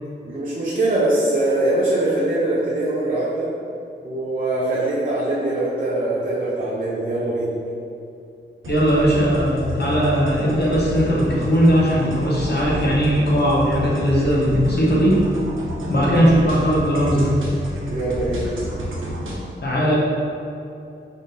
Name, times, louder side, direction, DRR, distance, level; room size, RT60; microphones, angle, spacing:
voice 1, 0.2-3.5 4.0-7.5 17.9-18.5, right 2 dB, 45° right, -7 dB, 0.7 m, -22 dB
sound 1, 8.6-19.4, equal, 90° right, 0.7 m, -30 dB
voice 2, 8.7-15.2 15.9-17.4 19.6-20.0, equal, 55° left, -6 dB, 1.0 m, -18 dB
3.7 x 2.7 x 3.7 m, 2.6 s
wide cardioid pair, 90°, 20 cm